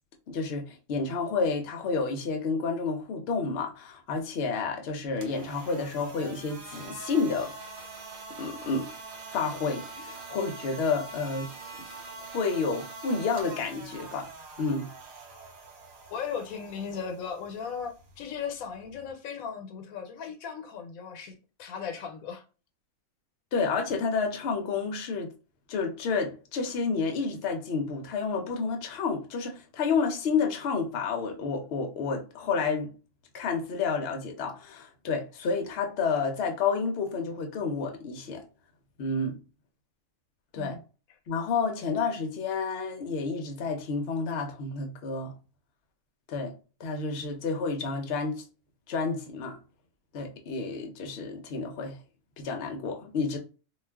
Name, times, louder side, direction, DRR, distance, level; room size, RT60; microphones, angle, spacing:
voice 1, 0.3-7.5 8.4-8.9 9.3-11.5 12.1-14.3 14.6-14.9 23.5-25.3 25.7-32.9 33.3-38.4 39.0-39.4 40.5-40.8 41.3-45.3 46.3-46.5 46.8-48.4 48.9-49.6 50.1-52.0 52.4-53.4, left 4 dB, 60° left, 0.8 m, -30 dB
sound 1, 5.1-19.1, right 4 dB, 75° right, 1.1 m, -44 dB
voice 2, 16.1-22.4 40.6-40.8, left 6 dB, 90° left, 1.1 m, -37 dB
2.4 x 2.3 x 3.3 m
omnidirectional pair, 1.4 m